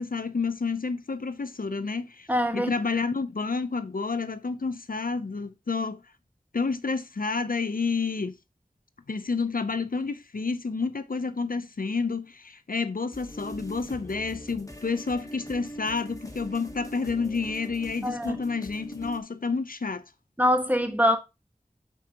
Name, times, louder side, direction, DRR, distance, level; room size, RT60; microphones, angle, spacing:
voice 1, 0.0-2.3 2.5-6.0 6.5-8.4 9.1-20.0, left 4 dB, 75° left, 0.5 m, -29 dB
voice 2, 2.3-2.7 18.0-18.4 20.4-21.2, equal, 10° right, 1.5 m, -23 dB
sound 1, 13.1-19.2, equal, 20° left, 1.5 m, -42 dB
11.0 x 4.5 x 2.9 m
wide cardioid pair, 40°, 15 cm